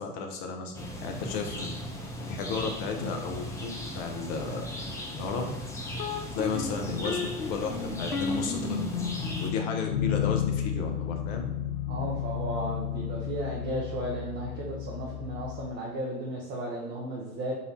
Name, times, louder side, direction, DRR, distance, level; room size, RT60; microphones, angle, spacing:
voice 1, 0.0-1.7 2.2-4.6 5.1-5.6 6.3-8.9 9.4-11.5, left 5 dB, 45° left, 3 dB, 0.9 m, -33 dB
sound 1, 0.7-9.5, left 1 dB, 5° left, 0.5 m, -38 dB
sound 2, 5.9-15.7, left 8 dB, 80° left, 0.7 m, -33 dB
voice 2, 11.9-17.5, right 1 dB, 25° right, -4 dB, 0.8 m, -34 dB
4.1 x 2.6 x 4.3 m, 1.1 s
figure-of-eight pair, 90°, 45 cm